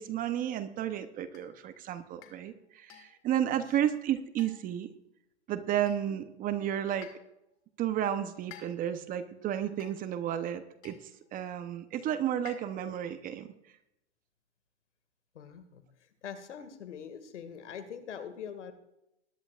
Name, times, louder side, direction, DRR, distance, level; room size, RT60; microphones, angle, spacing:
voice 1, 0.0-4.9 5.5-7.1 7.8-11.0 11.3-13.5, right 10 dB, 25° right, 11 dB, 0.8 m, -32 dB
sound 1, 1.3-1.6 2.2-2.5 2.9-3.3 4.4-4.8 5.9-6.2 7.0-7.4 8.5-9.0 9.8-10.2 10.8-11.1 12.4-13.0, left 11 dB, 35° left, 2.1 m, -53 dB
voice 2, 15.4-15.8 16.2-18.7, left 7 dB, 80° left, 9 dB, 2.1 m, -43 dB
21.0 x 11.0 x 2.5 m, 0.85 s
hypercardioid pair, 130°, 35 cm